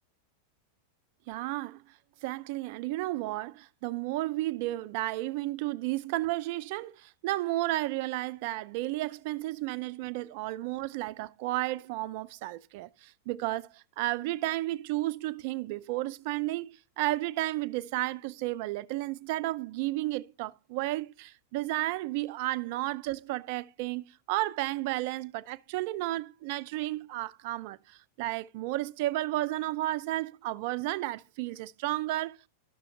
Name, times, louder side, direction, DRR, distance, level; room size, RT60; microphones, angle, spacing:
voice 1, 1.3-1.8 2.2-16.7 17.0-32.5, right 17 dB, 50° right, 0.4 m, -32 dB
12.5 x 6.2 x 3.2 m
figure-of-eight pair, 90°, 0 cm